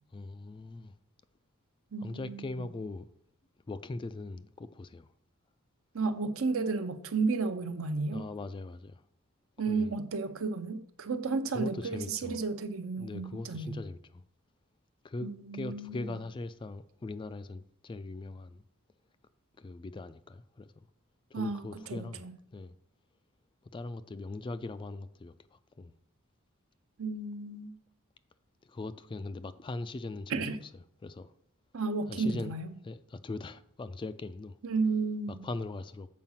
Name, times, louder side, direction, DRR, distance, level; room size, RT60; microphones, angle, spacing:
voice 1, 0.1-0.9 2.0-3.1 3.7-5.1 8.1-9.0 9.7-10.0 11.5-12.4 12.9-14.2 15.0-18.6 19.6-20.9 21.3-22.2 22.5-22.7 23.7-25.9 28.7-30.5 31.0-31.3 32.1-32.5 32.8-34.6 35.3-36.1, left 2 dB, 20° left, 0.3 m, -40 dB
voice 2, 1.9-2.5 5.9-8.2 9.6-13.8 15.2-16.1 21.3-22.3 27.0-27.8 30.3-30.6 31.7-32.7 34.6-35.4, right 4 dB, 70° right, 0.7 m, -32 dB
7.4 x 4.8 x 5.6 m
head